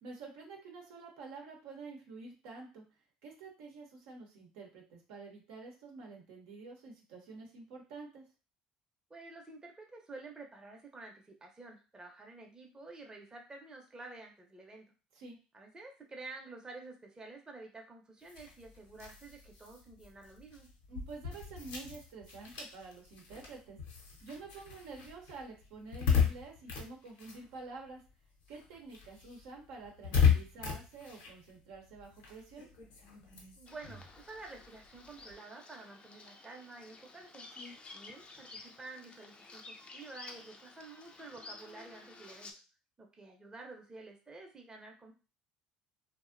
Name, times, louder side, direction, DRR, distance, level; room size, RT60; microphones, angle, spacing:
voice 1, 0.0-2.8 3.2-8.2 15.1-15.4 20.9-23.8 24.2-28.0 28.5-32.7 37.6-37.7, right 3 dB, 80° right, 0 dB, 0.7 m, -48 dB
voice 2, 9.1-14.9 15.5-20.7 33.6-37.5 37.9-42.5 43.0-45.1, right 3 dB, 20° right, 1 dB, 0.6 m, -50 dB
sound 1, 18.2-28.1 28.4-35.3, left 7 dB, 80° left, 0.7 m, -36 dB
Bird vocalization bird call bird song, 33.7-42.5, left 3 dB, 35° left, 0.4 m, -52 dB
2.4 x 2.0 x 2.5 m, 0.33 s
supercardioid pair, 75°, 3 cm